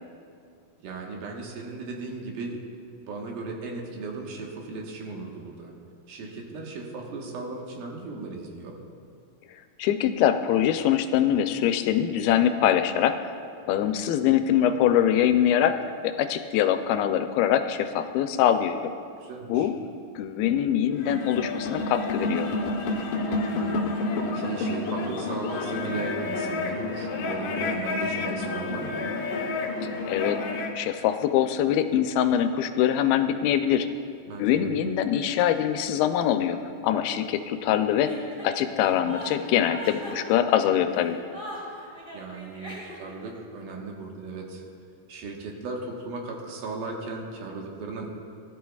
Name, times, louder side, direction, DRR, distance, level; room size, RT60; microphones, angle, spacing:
voice 1, 0.8-2.6 3.1-5.7 6.1-8.8 19.2-19.7 23.2-29.0 34.3-34.7 42.1-44.6 45.1-48.1, right 3 dB, 80° right, 0 dB, 3.1 m, -37 dB
voice 2, 9.8-13.3 13.7-15.8 16.0-18.9 19.5-19.7 20.2-22.5 30.1-30.4 30.8-33.9 34.4-36.6 36.8-38.2 38.4-41.2, left 10 dB, 90° left, 8 dB, 2.5 m, -23 dB
sound 1, 20.9-30.8, left 3 dB, 70° left, 2.3 m, -29 dB
Chuckle chortle, 38.0-43.2, right 1 dB, 25° right, 2.6 m, -41 dB
19.5 x 12.5 x 2.4 m, 2.4 s
omnidirectional pair, 4.2 m